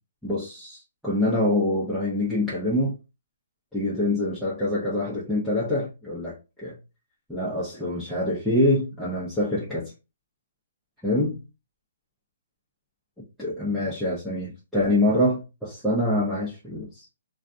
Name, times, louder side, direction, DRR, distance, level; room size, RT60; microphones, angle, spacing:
voice 1, 0.2-3.0 3.7-6.8 7.3-9.9 11.0-11.4 13.4-17.1, left 1 dB, ahead, 0.8 m, -25 dB
2.4 x 2.3 x 2.6 m
hypercardioid pair, 145°, 0 cm